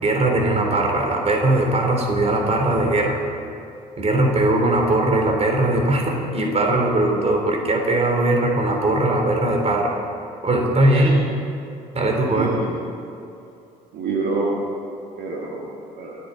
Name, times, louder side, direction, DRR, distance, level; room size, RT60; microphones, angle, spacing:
voice 1, 0.0-3.2 4.0-10.0 10.4-11.2 11.9-12.6, right 2 dB, 30° right, 1 dB, 3.4 m, -20 dB
voice 2, 12.2-12.7 13.9-14.5 15.2-16.2, right 4 dB, 55° right, -2 dB, 2.1 m, -27 dB
28.0 x 9.6 x 4.1 m, 2.6 s
figure-of-eight pair, 50°, 20 cm